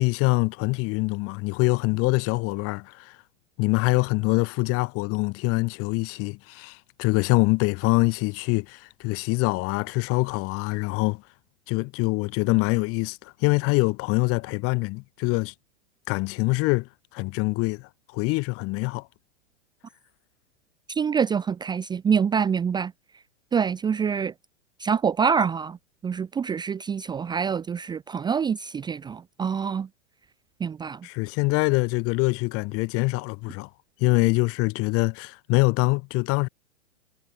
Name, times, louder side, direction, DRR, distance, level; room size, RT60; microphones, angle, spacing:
voice 1, 0.0-3.2 3.6-11.2 11.7-15.5 16.1-19.1 31.0-33.7 34.0-36.5, left 26 dB, 40° left, 4.3 m, -24 dB
voice 2, 20.9-22.9 23.5-24.3 24.8-25.8 26.0-29.9 30.6-31.0, right 6 dB, 10° right, 0.8 m, -25 dB
hypercardioid pair, 120°, 35 cm